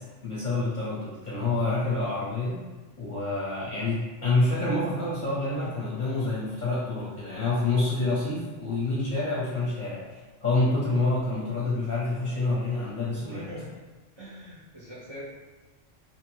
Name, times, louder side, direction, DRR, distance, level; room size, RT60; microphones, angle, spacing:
voice 1, 0.2-2.6 3.0-10.0 10.4-13.4, left 2 dB, 45° left, -9 dB, 0.8 m, -27 dB
voice 2, 13.2-13.8 14.2-15.2, equal, 30° right, -7 dB, 0.6 m, -42 dB
3.2 x 2.0 x 3.0 m, 1.2 s
omnidirectional pair, 1.3 m